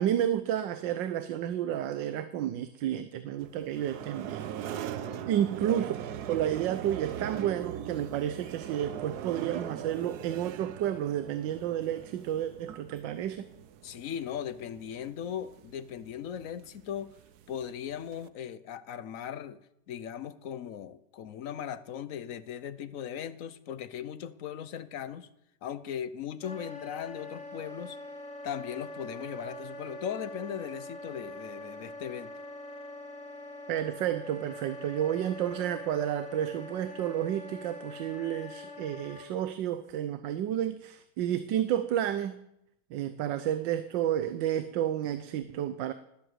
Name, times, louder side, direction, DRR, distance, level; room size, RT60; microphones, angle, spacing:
voice 1, 0.0-5.0 5.3-5.9 6.3-13.5 33.7-42.4 42.9-45.9, right 11 dB, 80° right, 11 dB, 1.4 m, -31 dB
sound 1, 3.4-18.3, right 10 dB, 65° right, 1.2 m, -41 dB
voice 2, 4.7-5.3 13.8-17.1 17.5-19.6 19.9-25.3 25.6-28.0 28.4-32.3, left 9 dB, 60° left, 15 dB, 1.0 m, -38 dB
Wind instrument woodwind instrument, 26.4-39.3, left 1 dB, 45° left, 2.6 m, -43 dB
19.0 x 7.7 x 8.0 m, 0.81 s
omnidirectional pair, 2.0 m